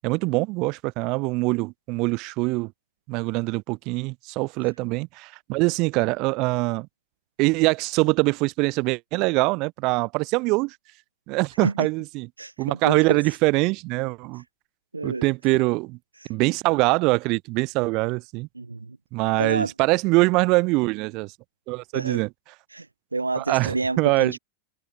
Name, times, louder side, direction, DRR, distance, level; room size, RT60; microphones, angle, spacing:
voice 1, 0.0-2.7 3.1-6.9 7.4-10.8 11.3-12.3 12.6-14.4 15.0-16.0 16.3-18.5 19.1-21.3 21.7-22.3 23.4-24.3, right 25 dB, 40° right, 4.1 m, -23 dB
voice 2, 12.4-13.2 14.9-15.3 16.2-16.3 18.6-19.0 19.4-19.7 21.9-22.2 22.7-22.9 23.1-24.4, right 3 dB, 80° right, 1.9 m, -28 dB
figure-of-eight pair, 90°, 0 cm